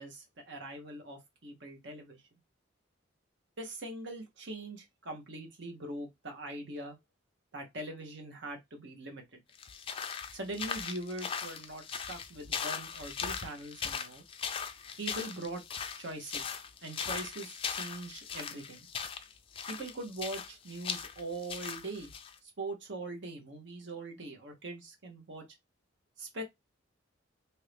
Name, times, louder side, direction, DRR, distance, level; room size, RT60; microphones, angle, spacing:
voice 1, 0.0-2.2 3.6-7.0 7.5-9.4 10.3-14.2 15.0-15.6 16.0-16.5 16.8-18.9 19.7-22.1 22.4-25.4 26.2-26.4, right 2 dB, 60° right, 1.0 m, -42 dB
sound 1, 9.5-22.3, left 7 dB, 25° left, 0.3 m, -39 dB
2.9 x 2.7 x 3.3 m
head